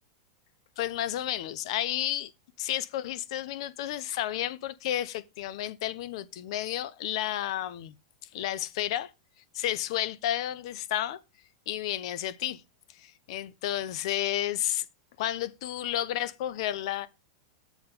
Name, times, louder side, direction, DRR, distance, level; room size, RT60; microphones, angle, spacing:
voice 1, 0.8-2.3 2.6-7.9 8.3-9.1 9.5-11.2 11.7-12.6 12.9-14.9 15.2-17.1, left 12 dB, 60° left, 1.0 m, -31 dB
7.3 x 5.0 x 5.3 m
supercardioid pair, 135°, 3 cm